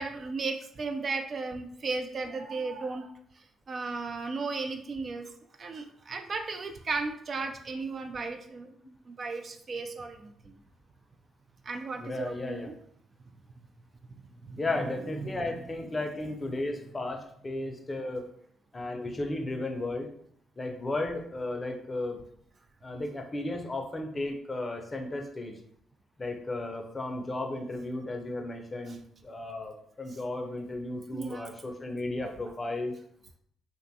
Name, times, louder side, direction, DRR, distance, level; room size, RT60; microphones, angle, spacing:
voice 1, 0.0-3.1 3.4-5.3 5.6-8.7 9.1-10.6 11.6-12.8 14.4-15.4 28.9-29.0 30.1-30.2 31.1-31.5 32.2-32.3, right 3 dB, 50° right, 6 dB, 0.3 m, -35 dB
voice 2, 12.0-12.7 14.6-18.3 18.7-20.1 20.6-22.2 22.8-25.5 26.2-32.9, left 2 dB, 30° left, 4 dB, 0.5 m, -34 dB
2.5 x 2.2 x 2.6 m, 0.67 s
hypercardioid pair, 50°, 0 cm